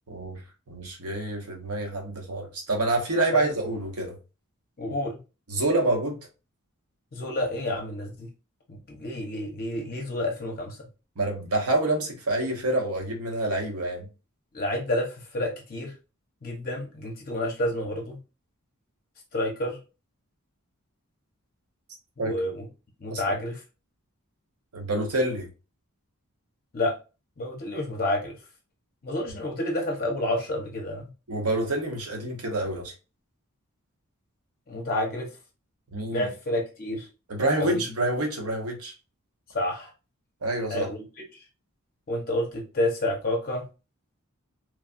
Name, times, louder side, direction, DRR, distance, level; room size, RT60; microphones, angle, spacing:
voice 1, 0.1-0.4 0.7-4.2 5.5-6.3 11.2-14.1 22.2-22.4 23.1-23.2 24.7-25.5 31.3-32.9 35.9-36.3 37.3-38.9 40.4-40.9, right 2 dB, 75° right, 1.0 m, -27 dB
voice 2, 4.8-5.2 7.1-8.3 8.7-10.9 14.5-15.9 16.4-18.2 19.3-19.8 22.2-22.6 23.0-23.6 26.7-26.9 27.4-28.3 29.0-31.1 34.7-35.3 36.1-37.1 37.6-37.8 39.5-39.9 40.7-41.0 42.1-43.6, left 1 dB, 40° left, 0.6 m, -29 dB
3.1 x 2.3 x 2.4 m
head